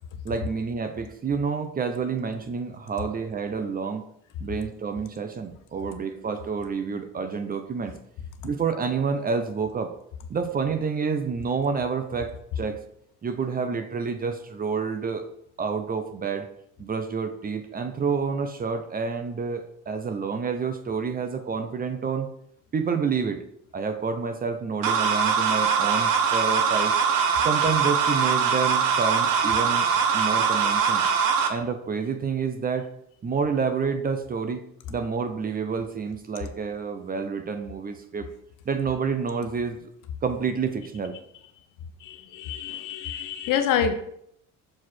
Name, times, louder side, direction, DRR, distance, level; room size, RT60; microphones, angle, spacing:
voice 1, 0.2-4.0 4.4-8.0 8.4-9.9 10.3-12.8 13.2-15.3 15.6-16.5 16.8-22.3 22.7-23.4 23.7-26.9 27.4-29.9 30.1-31.1 31.5-32.9 33.2-38.3 38.7-39.8 40.2-41.1, right 5 dB, 25° right, 0.6 m, -28 dB
sound 1, 24.8-31.5, right 6 dB, 75° right, 1.0 m, -22 dB
voice 2, 42.0-43.9, left 8 dB, 70° left, 0.9 m, -27 dB
6.3 x 4.8 x 4.3 m
cardioid pair, 130°, 33 cm